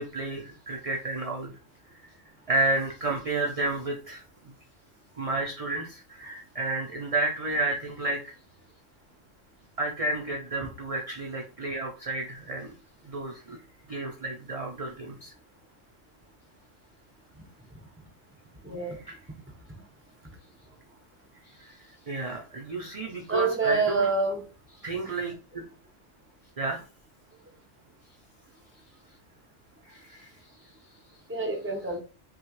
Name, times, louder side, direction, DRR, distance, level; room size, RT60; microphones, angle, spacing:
voice 1, 0.0-1.5 1.9-2.1 2.5-4.5 5.2-8.2 9.8-12.7 13.0-13.6 13.9-15.3 18.8-19.2 21.4-24.1 24.8-25.6 26.6-26.8 29.8-30.7, right 2 dB, 40° right, 1 dB, 0.5 m, -31 dB
voice 2, 18.6-19.0 23.3-24.4 31.3-32.0, right 4 dB, 10° right, 1 dB, 0.8 m, -26 dB
6.0 x 2.4 x 3.1 m, 0.35 s
omnidirectional pair, 1.3 m